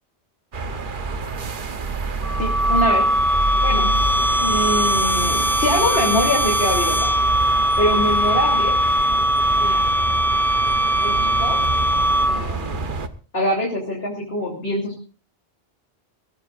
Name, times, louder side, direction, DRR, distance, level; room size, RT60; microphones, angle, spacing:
sound 1, 0.5-13.1, right 4 dB, 50° right, 1.2 m, -28 dB
sound 2, 2.2-12.6, equal, ahead, 0.9 m, -20 dB
voice 1, 2.4-3.1 3.6-3.9 4.4-7.1 7.8-8.8 9.6-9.8 11.0-11.6 12.3-12.8 13.3-15.0, left 1 dB, 70° left, -1 dB, 3.7 m, -24 dB
22.5 x 16.5 x 2.5 m, 0.36 s
omnidirectional pair, 1.1 m